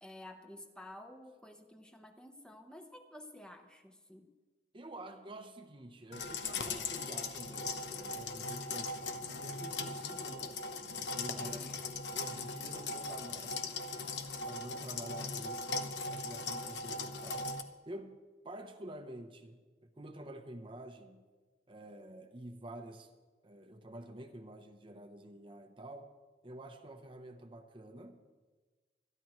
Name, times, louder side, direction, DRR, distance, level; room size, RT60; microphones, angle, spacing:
voice 1, 0.0-4.3 11.3-11.8, left 1 dB, 5° left, 5 dB, 0.9 m, -52 dB
voice 2, 4.7-11.6 12.1-13.6 13.9-14.2 14.4-18.2 18.4-21.2 21.7-23.1 23.4-26.1 26.4-28.2, right 1 dB, 30° right, 6 dB, 0.8 m, -49 dB
sound 1, 6.1-17.6, left 3 dB, 80° left, 1.0 m, -39 dB
26.0 x 11.0 x 3.1 m, 1.3 s
head